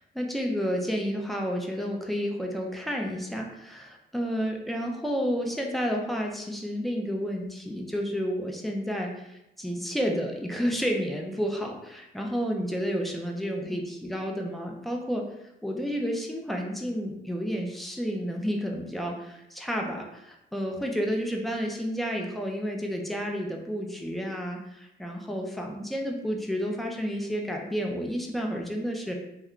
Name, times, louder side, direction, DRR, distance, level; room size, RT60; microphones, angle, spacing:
voice 1, 0.0-15.3 15.6-29.1, equal, ahead, 1 dB, 0.5 m, -31 dB
2.3 x 2.2 x 3.6 m, 0.86 s
cardioid pair, 90°, 20 cm